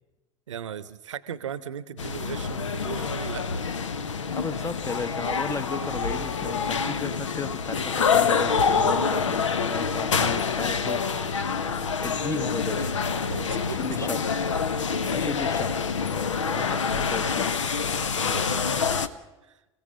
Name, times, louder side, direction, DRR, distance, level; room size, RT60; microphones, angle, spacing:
voice 1, 0.5-3.4 13.3-13.9 18.0-19.6, right 9 dB, 75° right, 15 dB, 0.9 m, -38 dB
sound 1, 2.0-19.1, left 5 dB, 80° left, 0.9 m, -26 dB
voice 2, 4.3-11.0 12.0-12.9 13.6-14.2 15.0-15.7 16.3-17.5, left 4 dB, 20° left, 12 dB, 0.9 m, -34 dB
29.0 x 16.0 x 6.4 m, 1.1 s
figure-of-eight pair, 75°, 16 cm